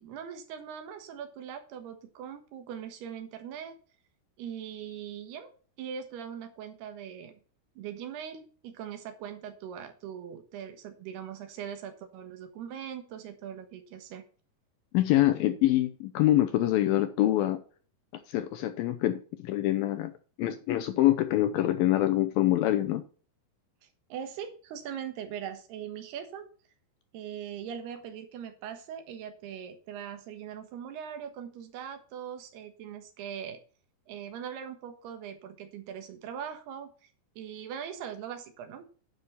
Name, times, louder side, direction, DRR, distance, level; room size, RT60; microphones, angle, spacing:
voice 1, 0.0-3.8 4.4-7.4 7.8-14.2 23.8-26.5 27.1-33.6 34.1-36.9 37.4-38.9, right 8 dB, 75° right, 3.3 m, -41 dB
voice 2, 14.9-17.6 18.1-20.1 20.4-23.0, left 14 dB, 75° left, 2.3 m, -25 dB
9.9 x 6.2 x 5.6 m
omnidirectional pair, 4.8 m